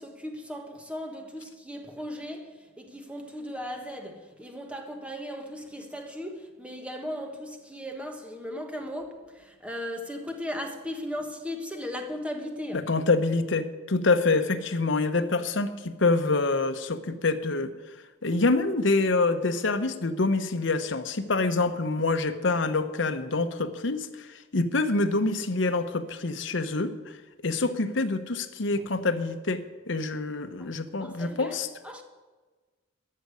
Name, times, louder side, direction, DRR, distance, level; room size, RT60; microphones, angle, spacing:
voice 1, 0.0-12.9 28.7-28.8 30.6-31.6 31.8-32.0, equal, 5° right, 1.3 m, -37 dB
voice 2, 12.7-17.7 18.2-24.3 24.5-26.9 27.4-31.7, left 3 dB, 70° left, 0.9 m, -26 dB
13.0 x 6.6 x 9.6 m
head